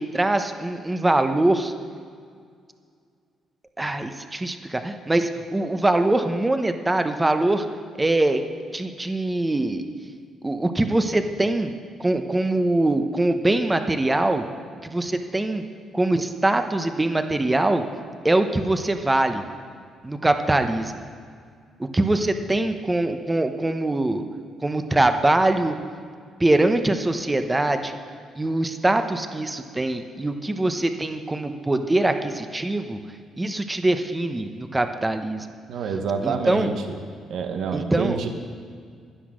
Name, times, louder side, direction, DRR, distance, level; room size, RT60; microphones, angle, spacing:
voice 1, 0.0-1.7 3.8-7.7 7.9-8.4 8.7-9.9 10.4-11.7 12.0-14.5 14.8-15.6 15.9-17.8 18.2-19.4 20.0-21.0 21.8-24.2 24.6-25.8 26.4-28.0 28.4-33.0 33.4-35.5 36.2-36.7 37.7-38.2, right 2 dB, 15° right, 7 dB, 1.0 m, -23 dB
voice 2, 35.7-37.0 37.3-38.3, right 5 dB, 75° right, 5 dB, 1.3 m, -27 dB
11.5 x 10.0 x 6.4 m, 2.1 s
cardioid pair, 90°, 0 cm